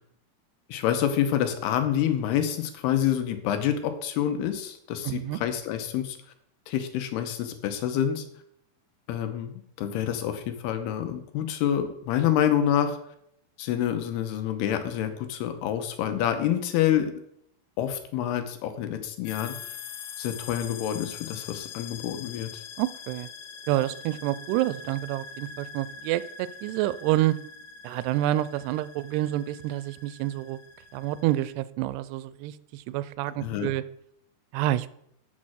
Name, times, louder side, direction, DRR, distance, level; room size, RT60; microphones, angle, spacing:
voice 1, 0.7-6.2 6.7-8.2 9.1-13.0 13.6-17.1 17.8-19.5 20.2-22.5 33.4-33.7, left 10 dB, 85° left, 8 dB, 2.9 m, -27 dB
voice 2, 5.0-5.4 22.8-23.3 23.7-27.4 27.8-30.6 30.9-33.8 34.5-34.9, right 15 dB, 90° right, 16 dB, 2.6 m, -28 dB
sound 1, 19.2-31.5, left 6 dB, 65° left, 2.3 m, -43 dB
8.5 x 6.4 x 6.2 m, 0.72 s
omnidirectional pair, 4.6 m